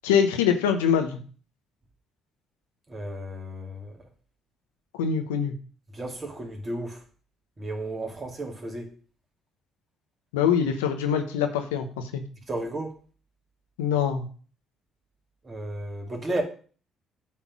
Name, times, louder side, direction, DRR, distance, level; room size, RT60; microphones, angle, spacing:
voice 1, 0.0-1.2 4.9-5.5 10.3-12.2 13.8-14.3, left 7 dB, 90° left, 0.9 m, -24 dB
voice 2, 2.9-4.0 5.9-7.0 7.6-8.9 12.5-13.0 15.4-16.4, right 1 dB, 30° right, 2.4 m, -33 dB
8.5 x 3.7 x 6.0 m
hypercardioid pair, 55°, 0 cm